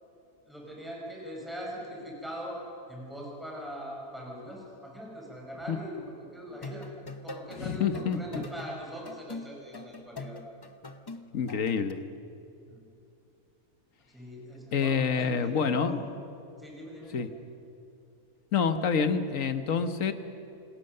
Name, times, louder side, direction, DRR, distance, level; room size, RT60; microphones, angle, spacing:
voice 1, 0.5-2.6 2.9-6.9 7.2-10.4 12.7-12.8 14.1-16.1 16.6-17.3, equal, ahead, -3 dB, 5.5 m, -41 dB
sound 1, 6.5-7.6 7.9-11.9, left 2 dB, 25° left, 0.5 m, -42 dB
voice 2, 7.6-8.4 11.3-12.0 14.7-16.0 17.1-17.3 18.5-20.1, left 6 dB, 60° left, 9 dB, 1.5 m, -27 dB
27.5 x 19.5 x 6.7 m, 2.8 s
omnidirectional pair, 1.6 m